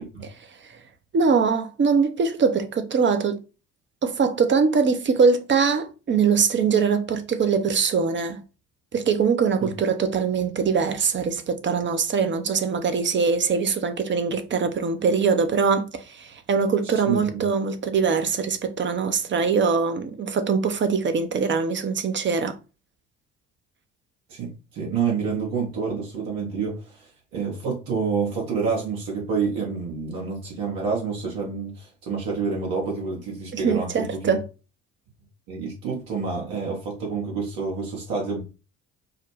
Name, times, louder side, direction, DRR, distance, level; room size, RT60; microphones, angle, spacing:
voice 1, 1.1-3.4 4.0-8.4 8.9-22.6 33.5-34.4, right 5 dB, 30° right, 0.7 m, -22 dB
voice 2, 17.1-17.4 24.3-27.0 27.3-34.4 35.5-38.4, right 5 dB, 65° right, 1.6 m, -28 dB
4.8 x 2.2 x 3.2 m
figure-of-eight pair, 50°, 37 cm